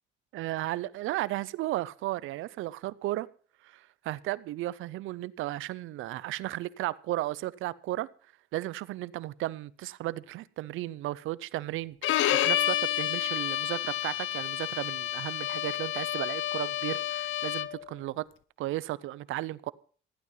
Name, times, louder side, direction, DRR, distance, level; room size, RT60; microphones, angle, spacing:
voice 1, 0.3-3.3 3.6-8.1 8.5-18.3 18.6-19.7, right 16 dB, 90° right, 0.8 m, -34 dB
Bowed string instrument, 12.0-17.9, left 13 dB, 80° left, 0.8 m, -30 dB
15.0 x 11.0 x 5.6 m
cardioid pair, 90°, 20 cm